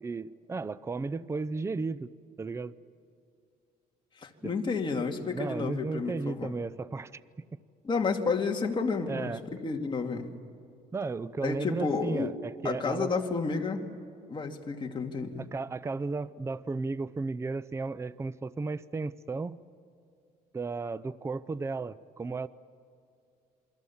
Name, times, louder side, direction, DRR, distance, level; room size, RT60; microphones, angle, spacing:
voice 1, 0.0-2.1 2.4-2.7 4.4-4.5 5.3-7.6 9.1-9.5 10.9-13.1 15.4-19.6 20.5-22.5, right 3 dB, 15° right, 17 dB, 0.5 m, -34 dB
voice 2, 4.2-6.5 7.8-9.4 9.6-10.3 11.4-12.3 12.6-13.9 14.3-15.4, left 4 dB, 30° left, 2 dB, 2.3 m, -31 dB
28.5 x 23.5 x 7.2 m, 2.5 s
cardioid pair, 110°, 17 cm